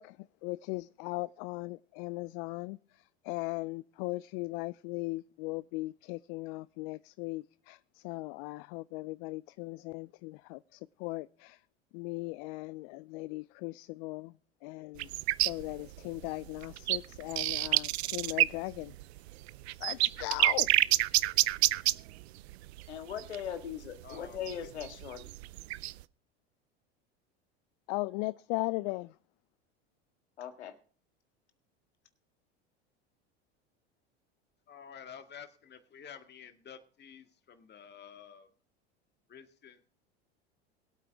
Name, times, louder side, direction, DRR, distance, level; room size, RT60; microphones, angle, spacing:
voice 1, 0.0-11.6 11.9-14.3 14.6-15.1 15.4-18.9 19.8-20.7 27.9-29.2, left 23 dB, 55° left, 0.4 m, -38 dB
sound 1, 15.0-26.0, right 18 dB, 75° right, 0.6 m, -28 dB
voice 2, 22.9-25.3 30.4-30.8, left 9 dB, 85° left, 1.8 m, -40 dB
voice 3, 24.0-24.7 34.7-38.5 39.3-39.8, left 7 dB, 30° left, 1.9 m, -50 dB
22.0 x 8.5 x 3.5 m
hypercardioid pair, 90°, 33 cm